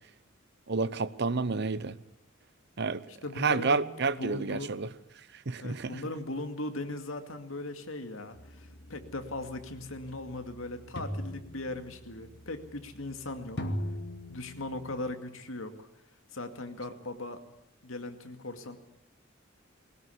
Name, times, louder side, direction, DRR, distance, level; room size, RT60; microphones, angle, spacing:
voice 1, 0.7-2.0 2.8-3.0 3.4-4.9 5.5-6.0, right 4 dB, 55° right, 0.8 m, -29 dB
voice 2, 3.1-4.7 5.6-13.6 14.3-15.9 16.3-17.4 17.8-18.8, left 2 dB, 90° left, 2.3 m, -39 dB
sound 1, 8.3-15.1, equal, 60° left, 2.1 m, -41 dB
20.5 x 18.5 x 8.5 m
head